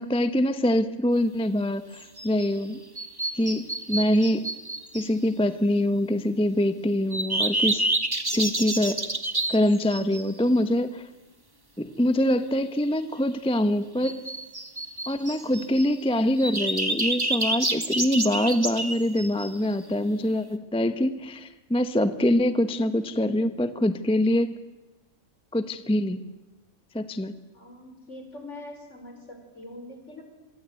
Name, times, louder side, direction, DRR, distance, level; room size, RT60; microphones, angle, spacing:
voice 1, 0.0-2.8 3.3-4.5 4.9-7.8 8.3-9.0 9.5-11.0 11.8-14.2 15.1-24.5 25.5-26.2 26.9-27.3, left 1 dB, 5° left, 11 dB, 0.7 m, -24 dB
sound 1, 2.0-2.5 3.0-5.1 7.1-10.3 14.0-15.9 16.4-19.7, right 1 dB, 15° right, 1.6 m, -28 dB
voice 2, 27.5-30.2, left 1 dB, 55° left, 6 dB, 5.2 m, -43 dB
26.5 x 24.0 x 9.3 m, 1.1 s
omnidirectional pair, 1.5 m